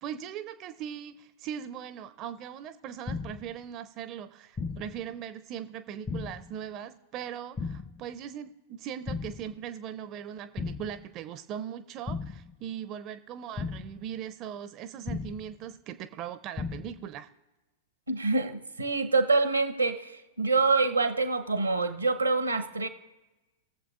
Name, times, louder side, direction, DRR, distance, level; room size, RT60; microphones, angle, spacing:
voice 1, 0.0-17.3, right 9 dB, 35° right, 12 dB, 0.4 m, -40 dB
sound 1, 3.1-3.5 4.6-5.0 6.1-6.5 7.6-8.0 9.1-9.5 10.6-11.0 12.1-12.5 13.6-14.0 15.1-15.5 16.6-17.0, left 4 dB, 20° left, 0.5 m, -36 dB
voice 2, 18.1-22.9, right 3 dB, 85° right, 10 dB, 0.8 m, -26 dB
21.0 x 7.2 x 2.4 m, 1.1 s
figure-of-eight pair, 95°, 0 cm